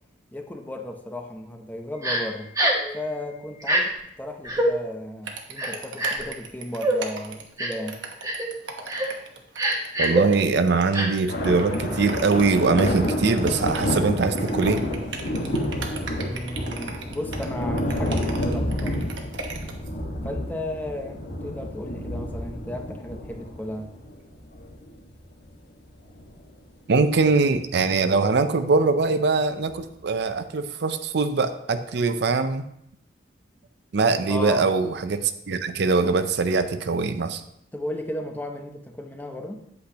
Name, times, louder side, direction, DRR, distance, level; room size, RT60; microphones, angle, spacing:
voice 1, 0.3-2.5 2.9-8.0 16.2-19.0 20.2-23.9 34.3-34.7 37.7-39.7, left 1 dB, 10° left, 4 dB, 0.7 m, -34 dB
Crying sobbing, 2.0-2.2 2.5-2.9 3.6-3.8 4.4-4.7 5.6-6.3 6.8-7.0 7.6-7.8 8.2-8.5 8.9-9.1 9.5-10.2 10.9-11.1, right 1 dB, 20° right, 1.2 m, -24 dB
sound 1, 5.2-19.9, right 4 dB, 80° right, 1.1 m, -37 dB
voice 2, 10.0-14.8 26.9-32.7 33.9-37.4, right 4 dB, 65° right, 10 dB, 0.5 m, -22 dB
sound 2, 11.3-25.4 25.9-26.2 27.2-27.4 28.1-28.2 29.7-29.8, left 1 dB, 60° left, 1.4 m, -29 dB
8.5 x 8.0 x 2.8 m, 0.75 s
head